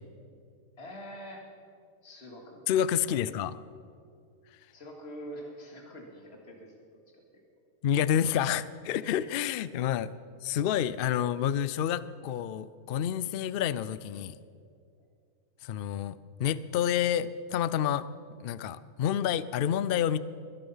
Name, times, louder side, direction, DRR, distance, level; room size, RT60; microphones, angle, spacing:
voice 1, 0.8-1.4 2.0-2.6 4.7-6.7 7.1-7.4 9.2-9.4, equal, 45° left, 1 dB, 2.4 m, -45 dB
voice 2, 2.7-3.6 7.8-10.1 10.4-14.4 15.6-18.1 18.4-20.2, left 10 dB, 85° left, 16 dB, 0.5 m, -29 dB
21.5 x 11.5 x 5.6 m, 2.3 s
omnidirectional pair, 1.6 m